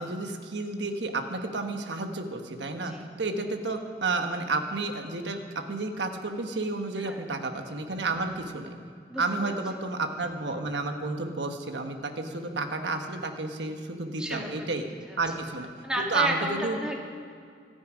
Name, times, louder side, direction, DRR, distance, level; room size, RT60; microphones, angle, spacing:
voice 1, 0.0-5.4 5.7-8.7 9.2-14.9 15.2-15.7 16.0-16.8, right 3 dB, 85° right, 5 dB, 1.3 m, -31 dB
voice 2, 9.1-9.5 14.2-14.8 15.1-15.2 15.8-17.0, right 1 dB, 5° right, -1 dB, 2.1 m, -32 dB
25.5 x 9.5 x 5.1 m, 2.3 s
head